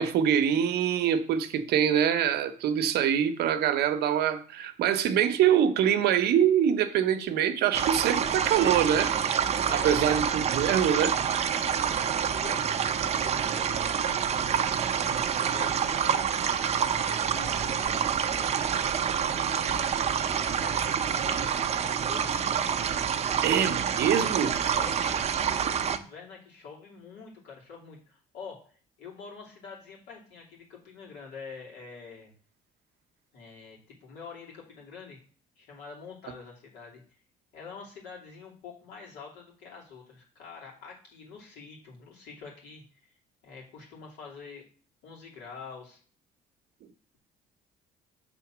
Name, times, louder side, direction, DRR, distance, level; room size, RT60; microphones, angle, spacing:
voice 1, 0.0-9.4 9.7-11.1 23.4-24.5, right 9 dB, 75° right, 0.8 m, -24 dB
sound 1, 7.7-26.0, right 8 dB, 40° right, 0.6 m, -27 dB
voice 2, 9.6-10.3 12.3-14.1 15.0-16.5 16.9-19.9 20.3-22.5 23.3-23.4 24.7-28.6 29.0-32.3 33.3-35.2 35.6-37.0 37.5-43.1 43.4-44.6 45.0-46.0, left 5 dB, 90° left, 2.8 m, -46 dB
6.9 x 3.7 x 6.0 m
cardioid pair, 110°, 17 cm